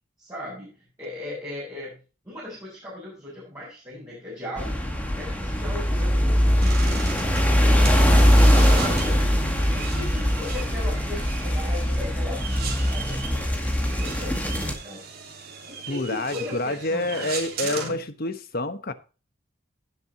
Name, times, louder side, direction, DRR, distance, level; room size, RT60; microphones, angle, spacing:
voice 1, 0.2-2.0 2.2-4.9 5.1-7.1 7.6-8.1 8.7-9.3 9.7-15.0 15.7-18.0, left 1 dB, 15° right, 6.5 m, -38 dB
sound 1, 4.6-14.7, equal, 5° left, 2.1 m, -21 dB
sound 2, 6.6-17.9, right 6 dB, 50° right, 3.0 m, -38 dB
voice 2, 15.9-18.9, left 2 dB, 45° left, 1.1 m, -28 dB
17.0 x 7.8 x 2.8 m
head